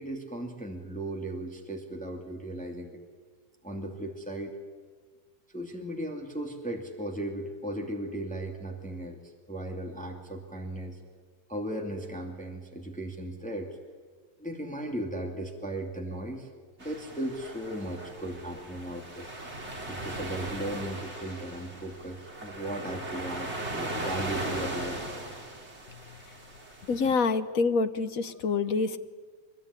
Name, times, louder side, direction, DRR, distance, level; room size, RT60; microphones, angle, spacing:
voice 1, 0.0-3.0 3.6-4.6 5.5-9.2 9.5-11.0 11.5-13.7 14.4-16.5 16.8-19.3 19.9-25.0, right 1 dB, 5° left, 2 dB, 2.5 m, -36 dB
sound 1, 16.8-27.1, right 1 dB, 35° right, 3.8 m, -38 dB
voice 2, 26.9-29.0, left 4 dB, 50° left, 10 dB, 1.4 m, -27 dB
24.0 x 22.0 x 9.9 m, 1.5 s
omnidirectional pair, 2.1 m